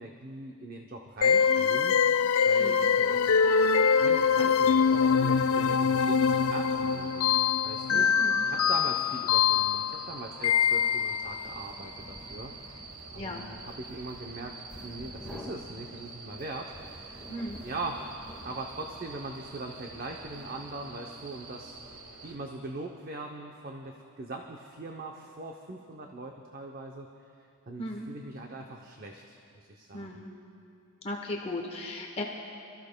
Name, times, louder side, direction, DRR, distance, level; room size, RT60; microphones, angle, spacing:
voice 1, 0.0-2.0 2.4-3.5 3.9-7.3 7.6-8.1 8.4-12.5 13.1-17.2 17.6-18.0 18.4-21.8 22.2-27.1 27.7-30.1, right 2 dB, 40° right, 2 dB, 0.6 m, -41 dB
sound 1, 1.2-11.4, left 6 dB, 70° left, 0.3 m, -24 dB
voice 2, 2.6-2.9 7.9-8.4 13.1-13.4 17.3-17.6 27.8-28.1 29.9-30.3 31.0-32.2, left 1 dB, 25° left, 1 dB, 0.9 m, -37 dB
sound 2, 2.8-22.4, right 4 dB, 90° right, 1.2 m, -47 dB
sound 3, 11.1-21.1, left 1 dB, 5° right, 1.5 m, -50 dB
27.5 x 14.0 x 2.2 m, 2.6 s
head